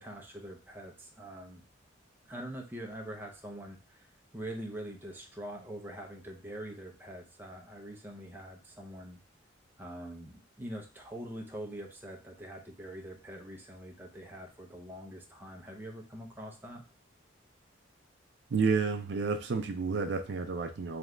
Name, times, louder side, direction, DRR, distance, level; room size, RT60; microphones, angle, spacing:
voice 1, 0.0-1.6 2.3-9.2 9.8-16.8, right 1 dB, 10° right, 1 dB, 0.6 m, -44 dB
voice 2, 18.5-21.0, right 5 dB, 60° right, 7 dB, 0.4 m, -30 dB
3.4 x 3.1 x 3.7 m, 0.34 s
head